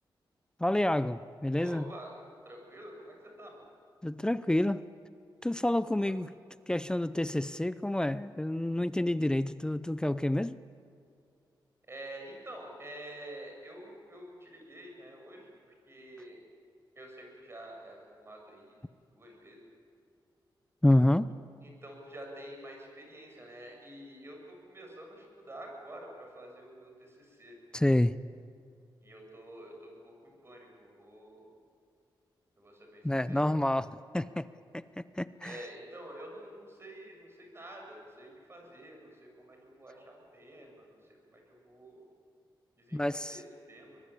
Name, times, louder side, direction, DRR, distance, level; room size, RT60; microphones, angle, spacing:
voice 1, 0.6-1.8 4.0-4.8 5.4-6.3 6.7-10.6 20.8-21.3 27.7-28.1 33.0-33.9 34.1-34.5 34.7-35.6 42.9-43.4, left 1 dB, 10° left, 15 dB, 0.6 m, -28 dB
voice 2, 1.6-2.1 2.4-3.7 6.0-6.1 11.9-15.5 15.9-16.4 17.0-18.8 19.1-19.6 21.6-27.6 29.0-31.5 32.6-33.5 35.4-42.0 42.8-44.0, right 1 dB, 30° right, 1 dB, 7.6 m, -48 dB
24.5 x 21.0 x 8.6 m, 2.4 s
cardioid pair, 90°, 8 cm